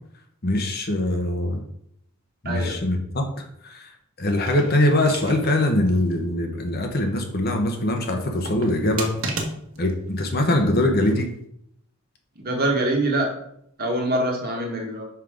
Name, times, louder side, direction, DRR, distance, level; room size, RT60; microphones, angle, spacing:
voice 1, 0.4-1.6 2.4-3.9 4.2-9.1 9.8-11.3, left 1 dB, 45° left, 3 dB, 1.0 m, -22 dB
sound 1, 4.3-5.7 6.1-6.2 8.1-9.9 10.8-11.3, right 3 dB, 70° right, 1.4 m, -34 dB
voice 2, 12.3-13.3 13.8-15.0, right 1 dB, 40° right, 0 dB, 1.6 m, -24 dB
5.9 x 5.5 x 5.0 m, 0.73 s
head